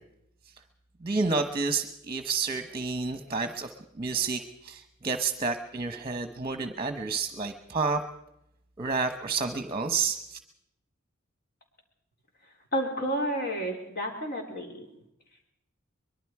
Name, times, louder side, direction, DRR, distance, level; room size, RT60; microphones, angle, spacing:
voice 1, 1.0-3.7 4.0-8.0 8.8-10.4, right 4 dB, 25° right, 8 dB, 1.1 m, -30 dB
voice 2, 12.7-14.9, equal, 50° left, 2 dB, 4.4 m, -30 dB
24.0 x 22.5 x 4.9 m, 0.79 s
head